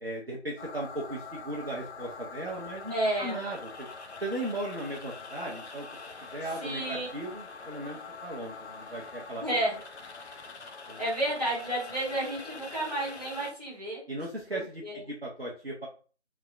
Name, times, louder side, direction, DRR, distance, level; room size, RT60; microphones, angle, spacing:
voice 1, 0.0-2.9 3.2-3.9 4.2-5.9 6.3-9.4 10.9-11.0 14.1-15.9, right 1 dB, 60° right, -4 dB, 0.8 m, -37 dB
sound 1, 0.6-13.5, left 4 dB, 75° left, 0.5 m, -44 dB
voice 2, 2.9-3.4 6.6-7.1 9.4-9.8 11.0-14.0 14.5-15.0, right 1 dB, 35° right, -6 dB, 1.1 m, -31 dB
3.4 x 2.1 x 2.4 m, 0.39 s
figure-of-eight pair, 175°, 33 cm